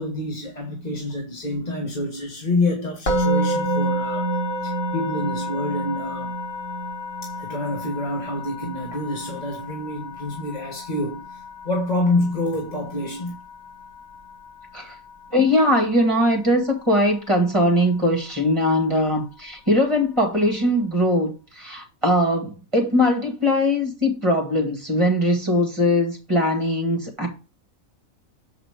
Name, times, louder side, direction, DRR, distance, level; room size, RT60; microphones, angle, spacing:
voice 1, 0.0-4.3 4.6-6.3 7.2-13.3, left 1 dB, 30° left, 1.5 m, -27 dB
Musical instrument, 3.1-14.2, right 1 dB, 65° left, 2.1 m, -29 dB
voice 2, 15.3-27.3, left 1 dB, 20° right, 2.4 m, -21 dB
7.7 x 4.9 x 4.8 m
omnidirectional pair, 1.4 m